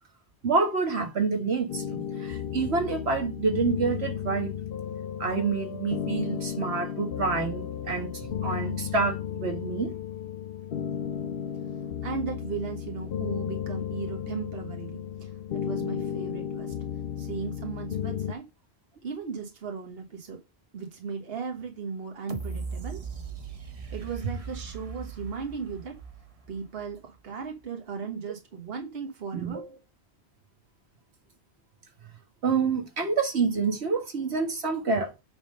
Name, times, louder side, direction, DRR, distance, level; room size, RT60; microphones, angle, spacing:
voice 1, 0.4-4.5 5.2-9.9 29.3-29.8 32.4-35.1, right 4 dB, 85° right, 1.8 m, -28 dB
sound 1, 1.7-18.4, left 9 dB, 65° left, 0.9 m, -34 dB
voice 2, 12.0-16.7 17.2-18.5 19.0-20.4 20.7-23.0 23.9-26.0 26.5-29.7, right 5 dB, 70° right, 1.5 m, -36 dB
sound 2, 22.3-27.2 27.6-27.7, right 5 dB, 35° right, 0.9 m, -39 dB
8.7 x 3.7 x 5.2 m
omnidirectional pair, 1.1 m